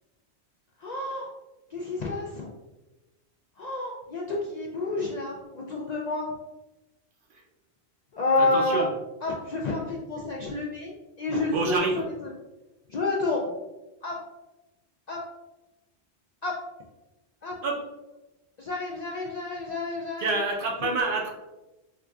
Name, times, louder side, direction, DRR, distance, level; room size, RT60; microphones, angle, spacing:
voice 1, 0.8-1.3 1.7-2.5 3.5-6.4 8.1-8.8 9.2-12.3 12.9-13.5 14.0-14.2 15.1-15.3 16.4-16.6 17.4-17.6 18.6-20.5 20.8-20.9, left 2 dB, 60° left, -2 dB, 0.4 m, -29 dB
voice 2, 8.4-8.9 11.5-12.0 17.6-17.8 20.2-21.3, right 3 dB, 60° right, 0 dB, 0.7 m, -27 dB
4.6 x 2.5 x 2.2 m, 1.0 s
omnidirectional pair, 1.1 m